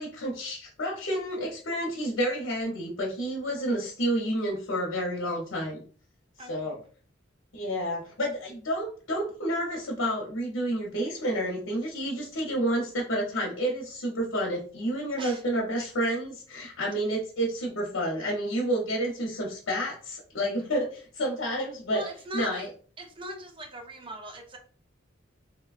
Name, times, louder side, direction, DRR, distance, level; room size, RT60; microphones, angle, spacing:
voice 1, 0.0-5.8 6.5-6.7 7.5-22.0 22.3-22.7, equal, 85° left, -1 dB, 0.7 m, -30 dB
voice 2, 6.4-6.8 15.2-15.4 21.9-22.7 23.0-24.6, right 1 dB, 25° right, 3 dB, 0.5 m, -40 dB
2.9 x 2.2 x 2.4 m, 0.42 s
head